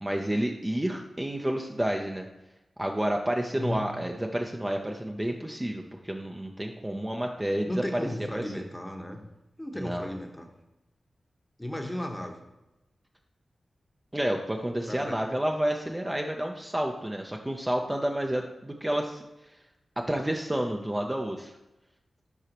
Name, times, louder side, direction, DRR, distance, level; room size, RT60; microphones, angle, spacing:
voice 1, 0.0-2.3 2.8-7.7 8.3-8.6 9.7-10.1 14.1-19.2 20.0-21.5, right 1 dB, 15° right, 2 dB, 0.6 m, -30 dB
voice 2, 3.5-3.8 7.6-9.2 9.6-10.5 11.6-12.4 14.9-15.2, left 1 dB, 15° left, 3 dB, 1.0 m, -35 dB
8.0 x 4.8 x 3.0 m, 0.97 s
cardioid pair, 45°, 0 cm